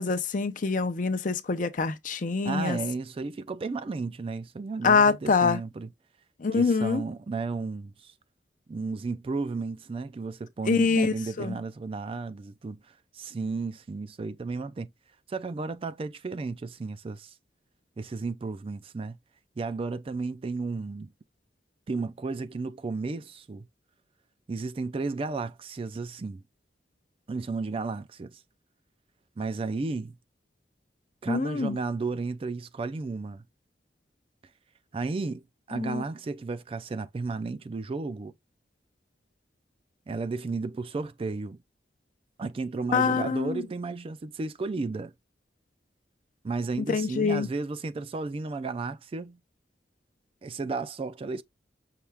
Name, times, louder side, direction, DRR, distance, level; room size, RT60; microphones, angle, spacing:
voice 1, 0.0-2.8 4.8-5.6 6.4-7.0 10.7-11.6 31.3-31.8 35.7-36.0 42.9-43.6 46.9-47.5, left 4 dB, 50° left, 0.5 m, -25 dB
voice 2, 2.4-5.9 6.5-8.1 8.7-14.9 15.3-17.3 18.0-19.2 19.6-21.1 21.9-23.7 24.5-26.4 27.3-28.4 29.4-30.2 31.2-33.4 34.9-35.4 35.7-38.3 40.1-41.6 42.4-45.1 46.4-49.4 50.4-51.4, right 3 dB, 30° right, 0.3 m, -33 dB
5.8 x 2.3 x 3.3 m
head